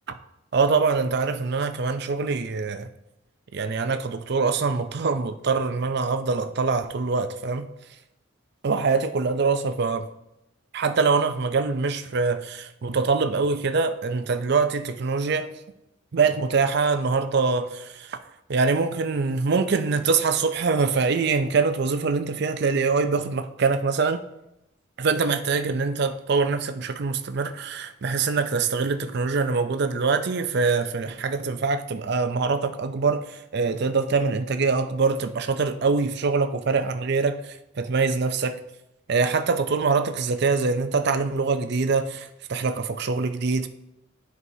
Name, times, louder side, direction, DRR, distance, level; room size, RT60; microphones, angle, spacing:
voice 1, 0.5-2.9 3.5-7.7 8.6-10.1 10.7-15.5 16.1-18.2 18.5-24.2 25.0-38.6 39.1-43.7, right 4 dB, 55° right, 0.5 m, -24 dB
12.0 x 4.7 x 2.7 m
head